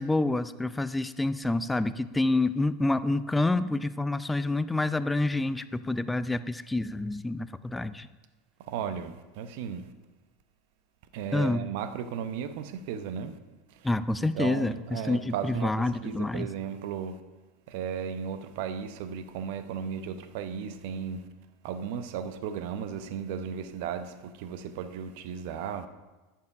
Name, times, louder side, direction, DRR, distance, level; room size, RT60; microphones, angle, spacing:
voice 1, 0.0-8.1 11.3-11.6 13.8-16.5, left 2 dB, 10° left, 0.4 m, -28 dB
voice 2, 8.7-9.9 11.1-13.4 13.7-13.9 14.2-17.2 17.7-21.3 21.6-25.9, right 7 dB, 60° right, 0.7 m, -35 dB
10.5 x 7.4 x 4.8 m
figure-of-eight pair, 85°, 0 cm